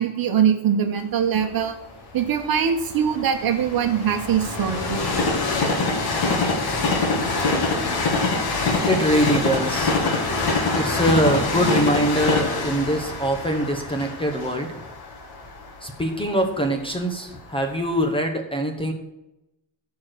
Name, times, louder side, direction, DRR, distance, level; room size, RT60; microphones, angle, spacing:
voice 1, 0.0-1.8 2.1-5.0, right 8 dB, 45° right, 6 dB, 1.3 m, -22 dB
Train, 1.4-17.3 17.9-18.0, left 3 dB, 50° left, 2.0 m, -25 dB
voice 2, 8.8-10.0 10.7-14.8 15.8-18.9, equal, 10° left, 4 dB, 1.0 m, -23 dB
14.0 x 4.7 x 6.2 m, 0.90 s
cardioid pair, 170°, 49 cm